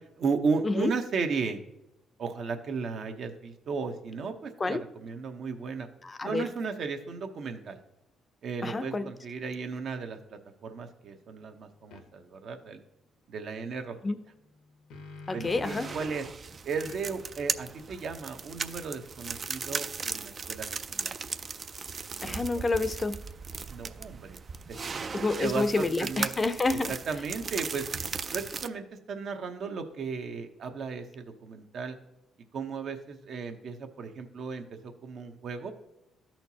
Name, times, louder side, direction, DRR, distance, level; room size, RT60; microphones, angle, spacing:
voice 1, 0.2-1.6 2.2-5.9 6.2-7.8 8.4-12.8 13.3-14.0 15.3-16.2 16.6-21.3 22.2-22.6 23.7-24.4 25.4-26.3 26.9-27.9 28.3-32.0 32.5-35.7, right 5 dB, 60° right, 6 dB, 0.8 m, -35 dB
voice 2, 6.0-6.4 8.6-9.1 14.0-14.2 15.3-15.9 22.2-23.1 25.1-26.9, left 3 dB, 25° left, 12 dB, 0.5 m, -28 dB
sound 1, 11.9-12.1 14.5-16.2 16.8-20.1, left 3 dB, 85° left, 0.9 m, -49 dB
sound 2, 15.4-28.7, right 5 dB, 40° right, 0.3 m, -37 dB
13.0 x 4.4 x 2.8 m, 0.92 s
cardioid pair, 85°, 0 cm